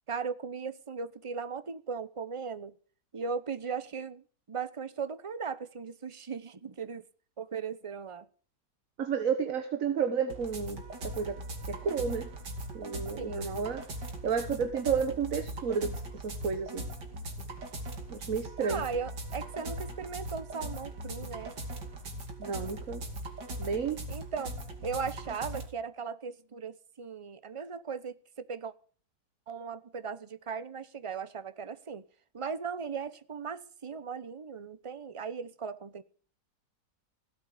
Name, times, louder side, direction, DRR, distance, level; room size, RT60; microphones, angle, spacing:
voice 1, 0.1-2.7 3.1-7.0 7.4-8.3 13.2-13.5 18.6-21.5 24.1-24.5 24.8-28.7 29.5-32.0 32.3-36.0, right 5 dB, 30° right, 0.6 m, -38 dB
voice 2, 9.0-10.8 11.2-11.4 11.7-12.3 12.7-13.8 14.2-16.9 18.1-18.8 22.4-23.0 23.6-24.0, right 6 dB, 50° right, 1.6 m, -31 dB
sound 1, 10.3-25.7, right 1 dB, 75° right, 3.3 m, -40 dB
17.0 x 8.2 x 9.4 m
omnidirectional pair, 1.9 m